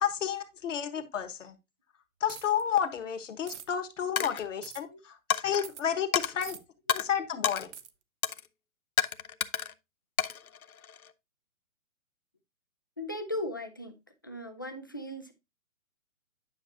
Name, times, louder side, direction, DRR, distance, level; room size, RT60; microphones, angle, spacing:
voice 1, 0.0-1.5 2.2-6.6 6.9-7.7, left 9 dB, 60° left, 1.4 m, -31 dB
sound 1, 2.3-2.6 3.5-3.7 4.6-4.8 5.6-5.8 6.4-6.6 7.7-7.9, right 8 dB, 55° right, 0.9 m, -44 dB
Coin (dropping), 4.2-4.5 5.3-5.6 6.1-6.3 6.9-7.0 7.4-7.7 8.2-8.5 9.0-9.7 10.2-11.1, left 8 dB, 80° left, 0.8 m, -30 dB
voice 2, 13.0-14.0 14.2-15.3, left 1 dB, 15° left, 0.3 m, -37 dB
9.9 x 5.8 x 2.6 m
figure-of-eight pair, 130°, 42 cm